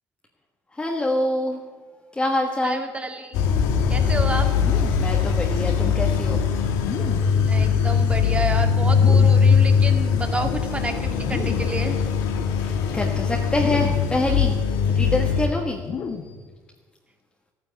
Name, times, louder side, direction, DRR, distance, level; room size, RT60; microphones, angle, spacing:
voice 1, 0.7-1.6 2.1-2.8 5.0-6.4 12.6-14.6 14.9-15.8, left 1 dB, 15° left, 0 dB, 1.6 m, -25 dB
voice 2, 2.6-3.5 3.9-4.5 7.4-12.0, right 2 dB, 20° right, 5 dB, 2.1 m, -30 dB
sound 1, 3.3-15.5, left 6 dB, 90° left, 1.7 m, -21 dB
sound 2, 4.5-5.2 6.7-7.4 8.8-9.6 11.1-11.8 13.5-14.2 15.7-16.5, left 5 dB, 45° left, 1.3 m, -34 dB
13.5 x 9.5 x 8.4 m, 1.4 s
cardioid pair, 105°, 6 cm